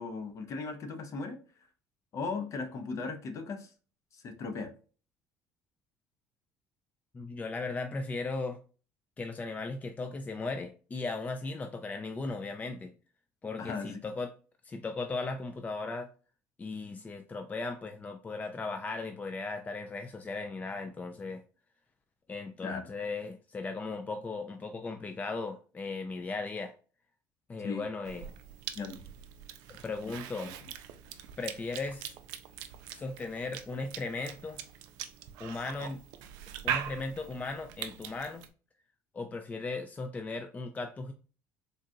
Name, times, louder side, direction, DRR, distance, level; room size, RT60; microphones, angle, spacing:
voice 1, 0.0-1.4 2.1-3.7 4.1-4.7 13.6-14.0 22.6-22.8 27.6-27.8 28.7-29.0 30.4-30.5, left 4 dB, 50° left, 0.8 m, -37 dB
voice 2, 7.1-8.6 9.2-12.9 13.4-14.3 14.6-16.1 16.6-21.4 22.3-26.7 27.5-28.2 29.7-30.5 31.4-32.1 32.9-34.6 35.4-36.0 36.6-38.4 39.1-41.1, left 3 dB, 25° left, 0.4 m, -37 dB
Cough / Chewing mastication, 28.0-38.5, right 9 dB, 80° right, 0.4 m, -42 dB
3.8 x 2.4 x 2.7 m
supercardioid pair, 85°, 7 cm